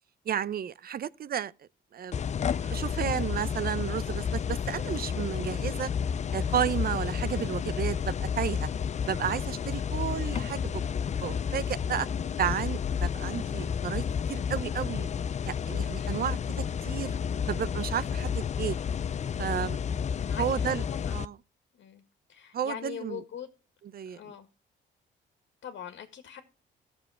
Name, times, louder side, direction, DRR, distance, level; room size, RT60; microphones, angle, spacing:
voice 1, 0.3-1.5 1.9-2.2 2.6-5.9 6.3-8.7 9.1-12.1 12.4-14.0 14.3-15.1 15.5-17.2 17.5-18.8 19.4-19.8 20.3-20.8 21.1-21.4 22.5-23.2 23.9-24.2, right 9 dB, 50° right, 0.6 m, -32 dB
sound 1, 2.1-21.3, left 7 dB, 35° left, 0.5 m, -31 dB
voice 2, 15.9-16.4 20.2-21.2 21.8-22.0 22.3-23.5 24.1-24.5 25.6-26.4, left 9 dB, 70° left, 1.9 m, -42 dB
14.0 x 7.0 x 4.9 m
cardioid pair, 90°, 20 cm